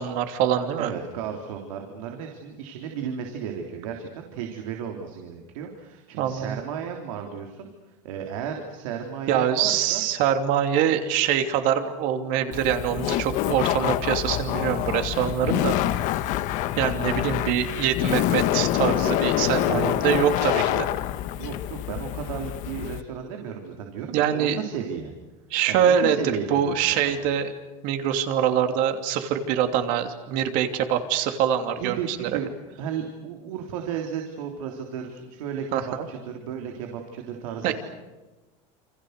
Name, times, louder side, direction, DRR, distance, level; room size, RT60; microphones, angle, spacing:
voice 1, 0.0-0.9 6.2-6.6 9.3-15.7 16.8-20.7 24.1-24.6 25.5-26.2 26.5-27.5 27.8-32.4 35.7-36.1 37.6-37.7, right 9 dB, 50° right, 7 dB, 3.0 m, -24 dB
voice 2, 0.8-7.7 8.0-10.0 19.6-20.2 20.7-20.8 21.3-25.1 25.7-27.1 31.8-32.5 32.8-37.7, right 7 dB, 85° right, 3 dB, 3.6 m, -34 dB
Laughter, 12.5-23.0, left 13 dB, 50° left, 1.4 m, -26 dB
29.0 x 26.5 x 6.7 m, 1.2 s
supercardioid pair, 155°, 17 cm